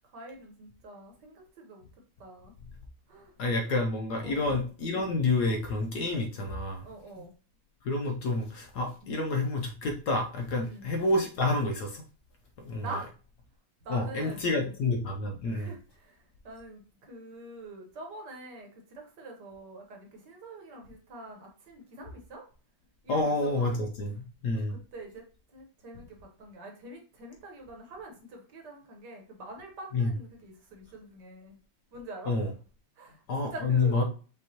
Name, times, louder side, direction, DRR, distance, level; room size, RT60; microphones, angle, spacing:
voice 1, 0.1-1.9 2.2-2.6 3.1-3.3 4.2-4.6 6.8-7.3 9.0-9.2 10.6-10.9 12.8-13.1 13.8-14.7 15.5-22.4 23.0-23.8 24.5-25.2 25.5-31.6 31.9-32.4 33.0-34.0, right 2 dB, 60° right, 2 dB, 1.5 m, -45 dB
voice 2, 3.4-6.8 7.8-12.0 12.6-12.9 13.9-15.7 23.1-24.1 24.4-24.8 29.9-30.1 32.3-32.5 33.3-34.0, left 2 dB, 65° left, 3 dB, 1.1 m, -28 dB
5.5 x 3.0 x 2.7 m, 0.38 s
omnidirectional pair, 2.2 m